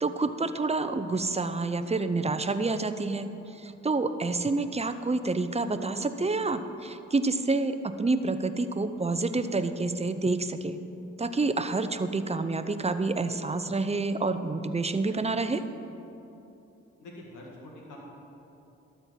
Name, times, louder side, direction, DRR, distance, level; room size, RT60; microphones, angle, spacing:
voice 1, 0.0-10.8 11.2-15.6, right 3 dB, 20° right, 10 dB, 0.7 m, -28 dB
voice 2, 17.0-18.0, left 1 dB, 85° left, -2 dB, 1.9 m, -45 dB
12.5 x 4.5 x 7.3 m, 2.8 s
supercardioid pair, 40°, 30 cm